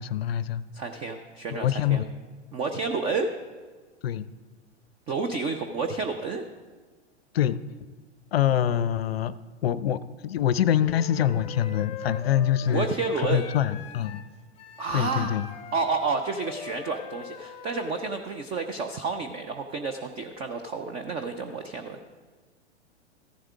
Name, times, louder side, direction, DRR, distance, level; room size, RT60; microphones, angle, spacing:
voice 1, 0.0-0.6 1.5-2.1 4.0-4.3 7.3-7.6 8.3-9.3 9.6-12.9 13.2-14.2 14.9-15.5, left 10 dB, 60° left, 17 dB, 0.5 m, -25 dB
voice 2, 0.7-2.0 2.5-3.3 5.1-6.4 12.6-13.5 14.8-15.4 15.7-22.0, right 4 dB, 15° right, 6 dB, 0.4 m, -30 dB
Wind instrument woodwind instrument, 10.8-18.3, left 7 dB, 15° left, 0.7 m, -42 dB
14.0 x 11.0 x 3.5 m, 1.4 s
figure-of-eight pair, 95°, 35 cm